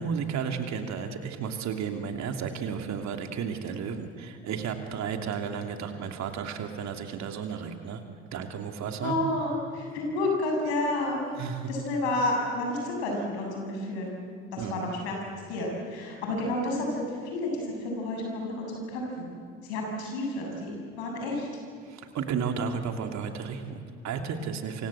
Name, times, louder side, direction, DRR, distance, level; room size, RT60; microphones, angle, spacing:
voice 1, 0.0-8.0 8.3-9.1 11.4-11.7 14.6-14.9 21.8-24.9, right 6 dB, 55° right, 5 dB, 3.2 m, -33 dB
voice 2, 9.0-11.2 11.7-14.2 14.5-15.1 15.5-19.3 19.6-21.5, left 2 dB, 75° left, 1 dB, 7.8 m, -30 dB
27.5 x 26.0 x 7.9 m, 2.3 s
hypercardioid pair, 55°, 32 cm